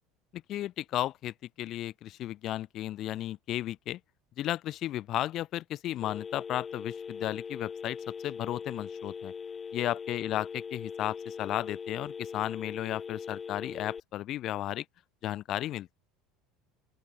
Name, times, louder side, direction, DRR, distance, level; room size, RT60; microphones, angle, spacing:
voice 1, 0.3-4.0 4.4-8.0 8.2-9.3 9.7-14.8 15.2-16.0, left 13 dB, 45° left, 0.4 m, -34 dB
Telephone, 6.0-14.0, left 6 dB, 20° left, 0.8 m, -41 dB
open air
supercardioid pair, 140°, 0 cm